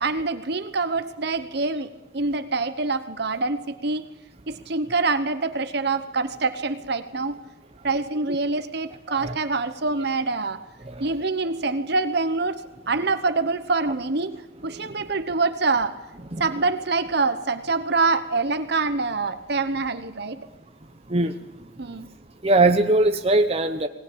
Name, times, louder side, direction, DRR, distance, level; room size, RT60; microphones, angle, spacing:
voice 1, 0.0-4.1 4.5-7.4 7.8-10.6 11.0-16.0 16.4-20.4 21.8-22.1, right 3 dB, 60° right, 11 dB, 1.1 m, -25 dB
voice 2, 22.4-23.9, right 2 dB, 30° right, 5 dB, 1.0 m, -20 dB
19.5 x 19.0 x 8.6 m, 1.0 s
head